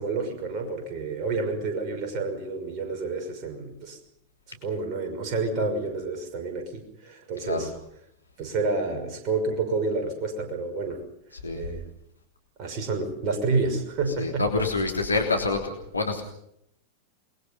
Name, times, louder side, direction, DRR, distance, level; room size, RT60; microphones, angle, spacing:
voice 1, 0.0-4.0 4.5-7.7 8.4-11.0 11.6-11.9 12.6-14.5, right 3 dB, 35° right, 3 dB, 6.0 m, -29 dB
voice 2, 14.2-16.2, left 3 dB, 80° left, 2 dB, 3.3 m, -26 dB
29.0 x 21.5 x 5.5 m, 0.73 s
figure-of-eight pair, 90°, 0 cm